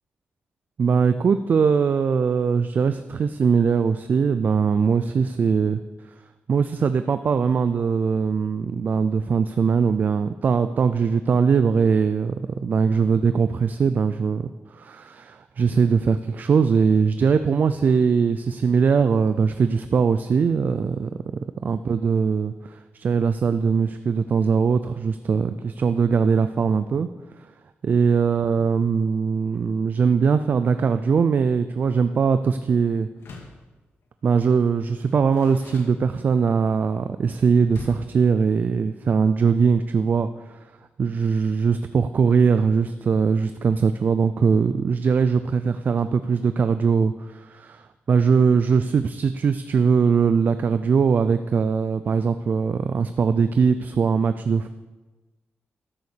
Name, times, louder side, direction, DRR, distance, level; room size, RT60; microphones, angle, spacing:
voice 1, 0.8-5.8 6.5-21.1 21.6-27.1 27.8-33.1 34.2-40.6 41.0-54.7, right 5 dB, 45° right, 11 dB, 0.4 m, -21 dB
Door, 33.1-33.7 34.8-36.5 37.7-38.2, left 3 dB, 80° left, 2.2 m, -42 dB
12.5 x 6.9 x 6.7 m, 1.2 s
wide cardioid pair, 150°, 4 cm